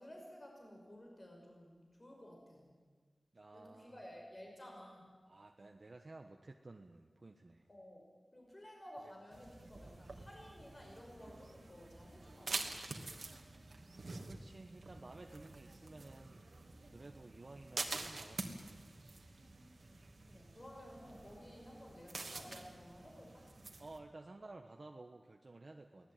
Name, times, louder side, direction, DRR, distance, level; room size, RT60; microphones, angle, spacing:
voice 1, 0.0-2.7 3.5-5.1 7.7-8.1 8.3-12.8 20.3-23.5 26.0-26.1, equal, 35° left, 0 dB, 5.4 m, -54 dB
voice 2, 3.3-4.0 5.3-7.7 9.0-9.1 14.2-16.5 16.8-19.3 23.8-26.1, right 2 dB, 50° right, 4 dB, 1.3 m, -54 dB
sound 1, 9.3-24.0, right 3 dB, 70° right, 2.5 m, -48 dB
24.0 x 18.0 x 9.2 m, 1.5 s
wide cardioid pair, 80°, 0 cm